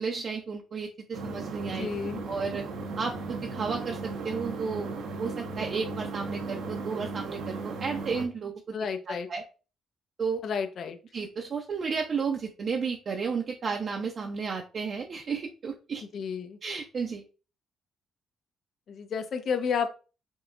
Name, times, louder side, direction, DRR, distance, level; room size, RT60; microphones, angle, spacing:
voice 1, 0.0-1.9 2.3-2.6 3.0-4.9 5.2-8.8 9.1-9.4 10.2-10.4 11.1-16.0 16.6-17.2, right 5 dB, 50° right, 1 dB, 0.7 m, -33 dB
sound 1, 1.1-8.3, right 3 dB, 80° right, 0.9 m, -36 dB
voice 2, 1.8-2.2 8.7-9.3 10.4-11.0 16.1-16.6 18.9-19.9, left 6 dB, 60° left, 7 dB, 0.8 m, -31 dB
5.4 x 2.3 x 3.8 m, 0.33 s
cardioid pair, 90°, 0 cm